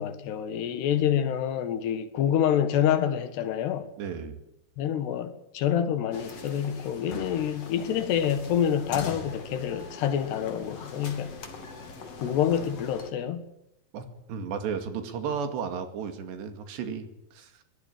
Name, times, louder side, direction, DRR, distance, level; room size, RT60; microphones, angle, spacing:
voice 1, 0.0-3.9 4.8-11.4 12.2-13.4, left 9 dB, 75° left, 3.6 m, -27 dB
voice 2, 4.0-4.4 13.9-17.6, right 6 dB, 75° right, 4.5 m, -34 dB
sound 1, 6.1-13.1, left 4 dB, 40° left, 3.2 m, -42 dB
23.0 x 18.5 x 8.9 m
omnidirectional pair, 5.0 m